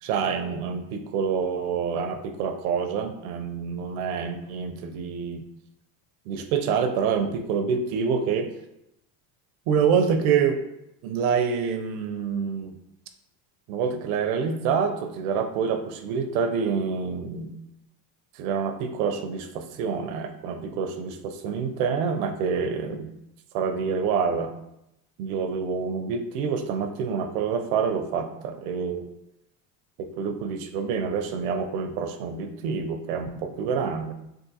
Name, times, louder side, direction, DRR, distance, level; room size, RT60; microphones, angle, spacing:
voice 1, 0.0-5.4 6.3-8.5 9.7-10.6 11.0-12.8 13.7-17.5 18.4-23.1 23.5-24.5 25.2-29.1 30.0-34.1, right 6 dB, 90° right, 7 dB, 0.6 m, -27 dB
3.6 x 2.5 x 2.7 m, 0.82 s
cardioid pair, 125°, 43 cm